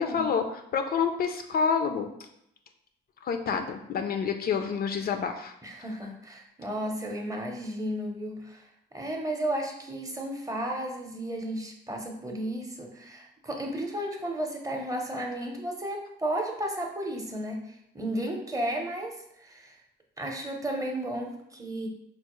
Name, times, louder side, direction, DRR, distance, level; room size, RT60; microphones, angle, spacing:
voice 1, 0.0-2.1 3.2-5.5, left 6 dB, 50° left, 6 dB, 0.4 m, -28 dB
voice 2, 5.6-8.6 8.9-19.7 20.2-21.9, right 1 dB, 15° right, 2 dB, 0.7 m, -33 dB
4.4 x 2.0 x 3.0 m, 0.77 s
cardioid pair, 90°, 20 cm